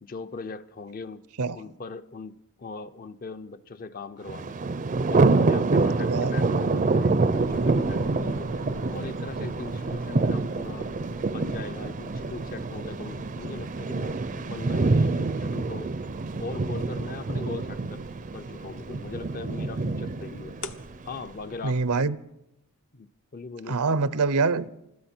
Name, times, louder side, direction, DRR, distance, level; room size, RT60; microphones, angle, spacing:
voice 1, 0.0-1.2 1.5-4.6 5.1-8.5 8.9-10.9 11.3-15.9 16.4-18.0 18.3-20.6 21.1-22.1 22.9-23.8, left 3 dB, 40° left, 0.6 m, -39 dB
Thunder, 4.3-21.3, right 3 dB, 35° right, 0.5 m, -26 dB
sound 1, 7.3-22.0, left 2 dB, 65° left, 0.9 m, -46 dB
voice 2, 21.6-22.2 23.7-24.8, right 4 dB, 80° right, 0.7 m, -25 dB
21.5 x 14.5 x 4.4 m
head